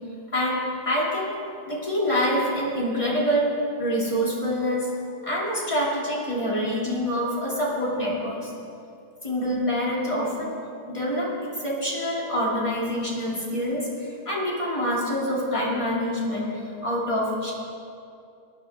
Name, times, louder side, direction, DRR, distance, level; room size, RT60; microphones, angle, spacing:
voice 1, 0.3-1.3 1.7-3.5 3.8-4.9 5.2-8.5 9.2-10.5 10.9-16.5 16.8-17.5, equal, 15° left, -5 dB, 2.6 m, -26 dB
18.5 x 10.5 x 3.5 m, 2.5 s
omnidirectional pair, 2.4 m